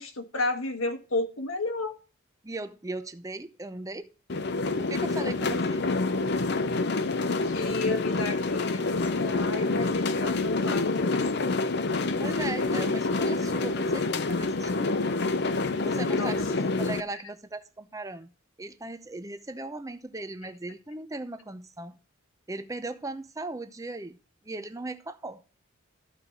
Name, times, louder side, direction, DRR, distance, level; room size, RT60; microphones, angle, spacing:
voice 1, 0.0-1.9 7.4-11.5 16.1-16.7 20.4-20.5, left 3 dB, 90° left, 1.8 m, -32 dB
voice 2, 2.4-4.1 4.8-5.9 12.2-15.0 15.8-18.3 18.6-22.0 22.5-24.2 24.4-25.4, right 2 dB, 15° right, 0.6 m, -38 dB
sound 1, 4.3-17.0, left 3 dB, 55° left, 0.6 m, -27 dB
13.5 x 4.7 x 5.2 m
head